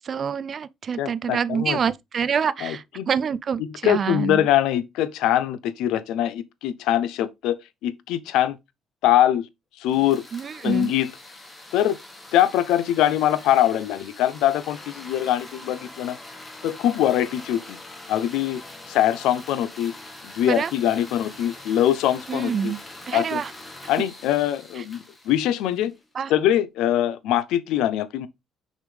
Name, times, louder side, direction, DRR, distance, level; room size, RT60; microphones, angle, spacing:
voice 1, 0.0-4.5 10.3-10.9 20.5-20.7 22.3-22.8 23.1-23.5 24.8-24.9 26.1-26.3, right 7 dB, 35° right, 0.3 m, -26 dB
voice 2, 1.0-1.8 2.6-3.1 3.8-8.6 9.0-9.4 9.8-10.2 10.6-11.1 11.7-12.0 12.3-16.2 16.6-17.8 18.1-18.6 18.9-19.9 20.3-22.7 23.1-23.4 23.9-25.9 26.3-28.3, left 11 dB, 80° left, 0.7 m, -23 dB
sound 1, 9.8-26.0, left 2 dB, 15° left, 1.4 m, -43 dB
6.3 x 5.2 x 3.3 m
cardioid pair, 165°, 0 cm